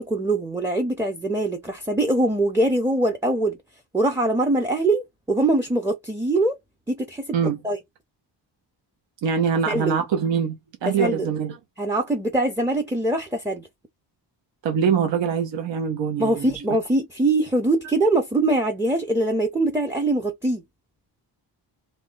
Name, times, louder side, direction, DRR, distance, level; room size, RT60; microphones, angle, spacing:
voice 1, 0.0-3.6 3.9-6.6 6.9-7.4 7.6-7.8 9.7-10.0 10.8-11.3 11.8-13.7 16.2-20.6, right 2 dB, 5° right, 0.5 m, -23 dB
voice 2, 9.2-10.5 10.8-11.5 14.6-16.5, right 7 dB, 80° right, 0.8 m, -23 dB
2.7 x 2.5 x 3.7 m
wide cardioid pair, 130°, 44 cm